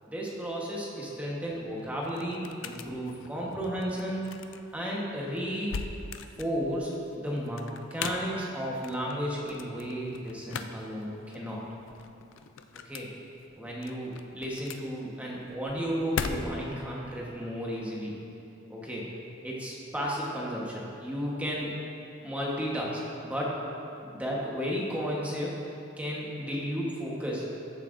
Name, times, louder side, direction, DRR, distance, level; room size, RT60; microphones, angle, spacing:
voice 1, 0.1-4.2 4.7-5.8 6.4-6.9 7.2-7.6 7.9-11.6 12.8-13.1 13.6-18.1 18.7-19.1 19.4-21.7 22.2-23.6 24.0-25.6 26.0-27.5, equal, 5° right, -4 dB, 1.2 m, -33 dB
sound 1, 1.3-16.8, left 5 dB, 70° left, 0.4 m, -41 dB
14.0 x 7.4 x 2.6 m, 2.7 s
head